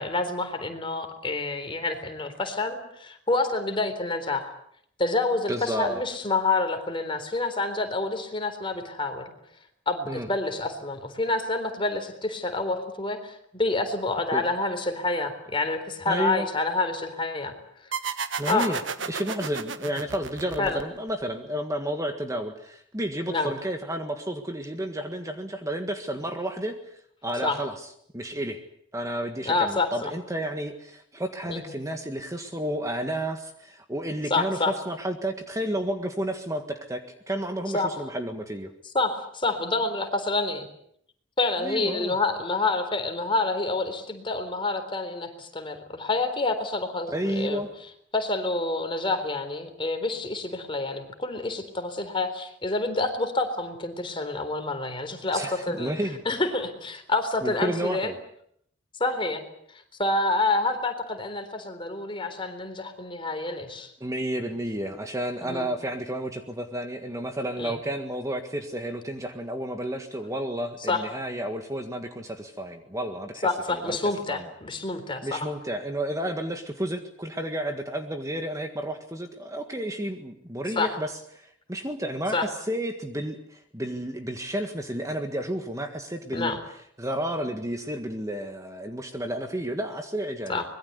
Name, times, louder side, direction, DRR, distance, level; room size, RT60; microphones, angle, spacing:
voice 1, 0.0-4.5 5.0-9.3 9.9-17.5 18.5-18.8 20.6-20.8 23.3-23.5 27.4-27.6 29.5-30.1 31.5-31.8 34.3-34.7 37.7-38.0 38.9-40.7 41.4-47.6 48.1-55.9 56.3-58.1 59.0-59.4 59.7-63.9 65.4-65.7 67.6-67.8 70.9-71.1 73.4-75.5 80.8-80.9 82.3-82.5 86.3-86.6 90.5-90.6, left 3 dB, 25° left, 6 dB, 3.9 m, -28 dB
voice 2, 5.5-6.0 10.1-10.3 14.3-14.4 16.0-16.4 18.4-18.8 19.1-26.9 27.2-27.7 28.1-28.6 28.9-38.7 41.6-42.2 47.1-47.7 55.3-56.2 57.4-58.2 64.0-74.5 75.2-86.6 87.0-90.6, right 1 dB, 15° right, 6 dB, 1.7 m, -31 dB
sound 1, 17.9-21.2, right 5 dB, 75° right, 1.6 m, -33 dB
25.0 x 21.5 x 8.2 m, 0.68 s
head